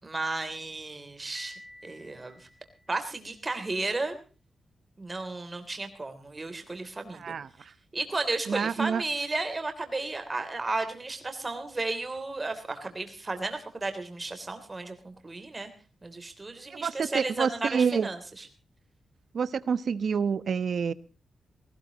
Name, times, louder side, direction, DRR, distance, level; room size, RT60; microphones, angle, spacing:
voice 1, 0.0-2.5 2.9-4.2 5.0-7.3 7.9-15.7 16.0-18.5, right 3 dB, 20° right, 7 dB, 3.3 m, -34 dB
Piano, 1.3-3.3, left 1 dB, 25° left, 3.2 m, -50 dB
voice 2, 7.1-7.7 8.5-9.0 16.7-18.1 19.3-20.9, right 6 dB, 55° right, 15 dB, 1.0 m, -28 dB
19.5 x 18.0 x 3.0 m, 0.35 s
wide cardioid pair, 165°, 0 cm